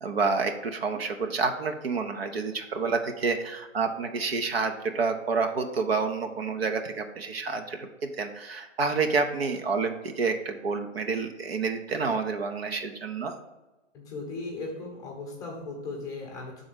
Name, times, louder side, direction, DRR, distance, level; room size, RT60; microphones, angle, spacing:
voice 1, 0.0-7.9 8.2-13.4, right 4 dB, 50° right, 6 dB, 0.8 m, -29 dB
voice 2, 13.9-16.7, left 3 dB, 10° left, -1 dB, 0.8 m, -37 dB
6.0 x 3.9 x 6.1 m, 1.1 s
hypercardioid pair, 145°, 38 cm